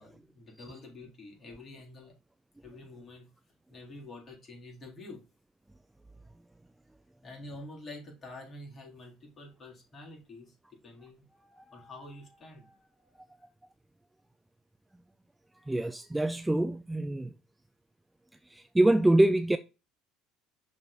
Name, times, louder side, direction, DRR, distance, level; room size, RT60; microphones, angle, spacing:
voice 1, 0.0-2.1 2.6-3.3 3.7-5.2 7.2-10.5 10.8-13.5, left 2 dB, 30° left, 3.7 m, -48 dB
voice 2, 15.7-17.3 18.5-19.6, right 1 dB, 10° right, 0.4 m, -25 dB
6.0 x 4.1 x 5.0 m
supercardioid pair, 95°, 0 cm